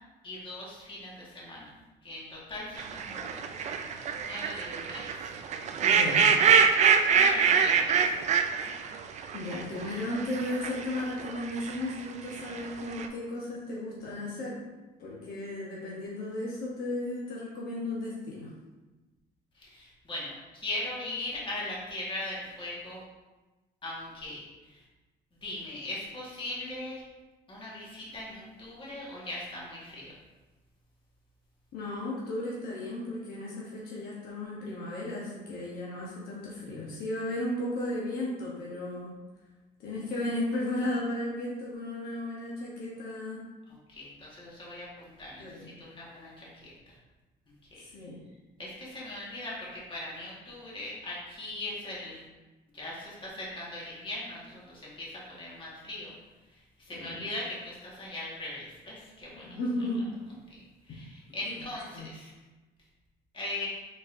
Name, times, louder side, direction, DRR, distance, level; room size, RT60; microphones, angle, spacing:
voice 1, 0.2-1.7 2.0-3.4 4.3-5.3 7.0-8.1 19.5-23.0 23.8-24.8 25.4-27.0 27.5-30.1 43.9-47.0 48.6-52.2 52.7-56.1 56.5-59.5 60.5-62.3 63.3-63.7, left 2 dB, 30° left, -5 dB, 1.5 m, -39 dB
sound 1, 2.8-11.9 12.4-13.1, right 6 dB, 45° right, 0.4 m, -25 dB
voice 2, 5.8-6.3 9.3-14.6 15.0-18.5 31.7-39.2 39.8-43.4 45.4-45.7 47.8-48.2 56.9-57.2 59.4-60.1 60.9-61.0 61.4-61.6 61.9-62.1, left 1 dB, 65° left, -5 dB, 1.0 m, -35 dB
4.3 x 3.9 x 2.5 m, 1.2 s
cardioid pair, 110°, 17 cm